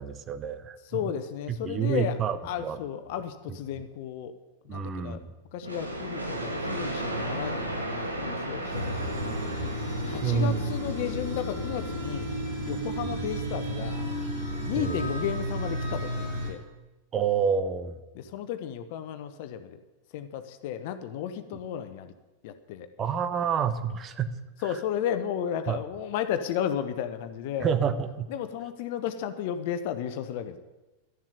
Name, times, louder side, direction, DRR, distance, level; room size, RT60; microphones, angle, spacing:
voice 1, 0.0-0.8 1.6-2.8 4.7-5.3 10.2-10.7 13.0-13.1 14.8-15.1 17.1-17.9 23.0-24.3 25.7-25.8 27.6-28.3, right 7 dB, 25° right, 10 dB, 1.1 m, -28 dB
voice 2, 0.9-2.2 2.4-4.3 4.6-5.2 5.5-9.4 10.0-12.3 12.6-14.0 14.7-16.6 18.1-19.8 20.1-22.1 22.4-22.9 24.6-27.7 28.3-30.6, left 9 dB, 50° left, 10 dB, 1.1 m, -33 dB
sound 1, 5.6-11.3, right 1 dB, 85° right, 2.0 m, -34 dB
sound 2, 8.7-16.5, equal, 60° right, 6.3 m, -32 dB
12.5 x 7.4 x 9.6 m, 1.1 s
figure-of-eight pair, 90°, 0 cm